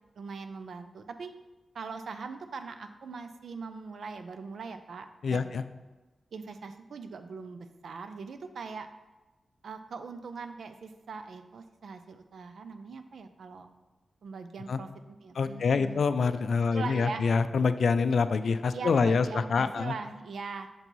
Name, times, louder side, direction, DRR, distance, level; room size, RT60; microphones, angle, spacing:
voice 1, 0.2-1.3 1.7-5.5 6.3-8.9 9.6-13.7 14.2-16.0 16.7-17.2 18.7-20.7, right 4 dB, 80° right, 9 dB, 0.5 m, -41 dB
voice 2, 5.2-5.6 14.7-14.8 15.4-19.9, left 5 dB, 75° left, 11 dB, 0.3 m, -26 dB
6.8 x 4.0 x 4.5 m, 1.2 s
wide cardioid pair, 105°, 0 cm